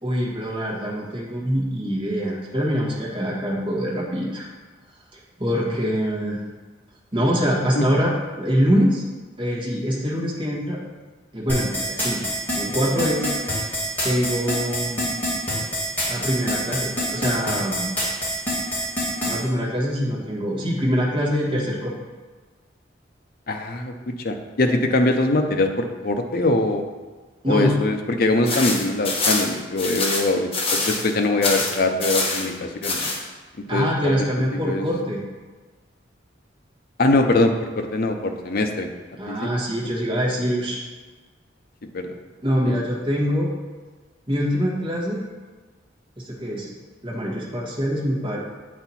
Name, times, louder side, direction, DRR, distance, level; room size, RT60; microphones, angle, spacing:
voice 1, 0.0-4.5 5.1-6.4 7.1-9.0 9.4-10.8 11.3-12.2 12.5-13.7 14.0-15.0 16.1-17.9 19.2-21.9 27.4-27.8 33.7-35.2 39.2-40.8 42.4-43.5 44.3-45.2 46.2-46.7 47.0-48.4, equal, 30° right, -5 dB, 1.5 m, -24 dB
sound 1, 11.5-19.4, equal, 10° left, 2.1 m, -25 dB
voice 2, 23.5-26.8 27.5-33.0 33.7-34.1 34.5-34.8 37.0-38.9 39.3-39.5 39.8-39.9 41.9-42.2 42.7-42.8, left 2 dB, 50° left, 5 dB, 0.6 m, -22 dB
sound 2, 28.4-31.1 31.4-32.5 32.8-33.2, left 3 dB, 30° left, 1.0 m, -24 dB
7.9 x 4.3 x 4.2 m, 1.4 s
head